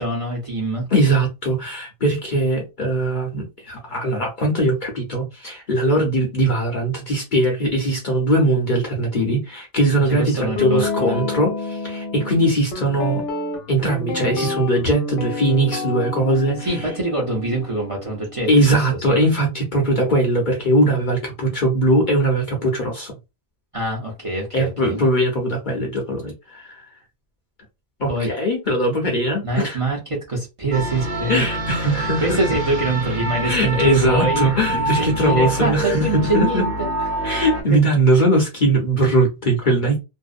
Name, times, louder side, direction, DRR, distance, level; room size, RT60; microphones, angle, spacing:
voice 1, 0.0-0.9 10.2-11.1 16.6-18.8 19.1-19.2 23.7-25.0 28.1-28.3 29.4-30.0 30.3-31.5 32.0-36.9 37.7-37.8, right 2 dB, 35° right, 0.6 m, -24 dB
voice 2, 0.9-13.2 13.7-16.9 18.5-23.1 24.5-26.9 28.0-29.8 31.3-32.4 33.4-36.6 37.2-40.0, right 1 dB, 50° left, 0.7 m, -20 dB
Guitar, 10.6-18.7, left 3 dB, 90° left, 1.0 m, -29 dB
sound 1, 30.7-37.6, right 1 dB, 60° right, 1.1 m, -26 dB
2.6 x 2.0 x 2.4 m
omnidirectional pair, 1.3 m